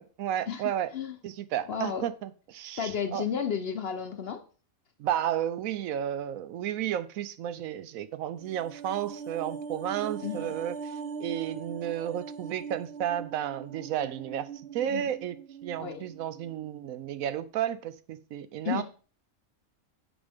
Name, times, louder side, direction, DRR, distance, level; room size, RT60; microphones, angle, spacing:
voice 1, 0.0-0.9 1.2-3.2 5.0-14.5 14.7-15.4 15.6-18.8, right 10 dB, 80° right, 13 dB, 1.0 m, -32 dB
voice 2, 1.7-2.0 2.8-4.4 10.2-10.5 14.9-15.1 15.8-16.0 18.6-18.8, left 7 dB, 55° left, 8 dB, 0.8 m, -32 dB
sound 1, 8.4-16.8 17.1-17.2, right 6 dB, 55° right, 0.9 m, -41 dB
8.8 x 5.3 x 3.5 m, 0.39 s
omnidirectional pair, 1.5 m